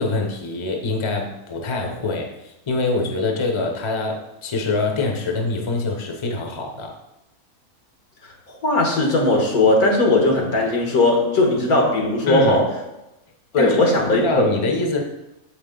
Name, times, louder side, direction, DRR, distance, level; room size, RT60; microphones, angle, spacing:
voice 1, 0.0-6.9 12.3-12.7 13.6-13.8 14.1-15.0, left 3 dB, 25° left, 2 dB, 0.7 m, -24 dB
voice 2, 8.5-12.7 13.5-14.6, left 2 dB, 80° left, 1 dB, 1.8 m, -18 dB
7.3 x 5.0 x 3.8 m, 0.90 s
omnidirectional pair, 1.6 m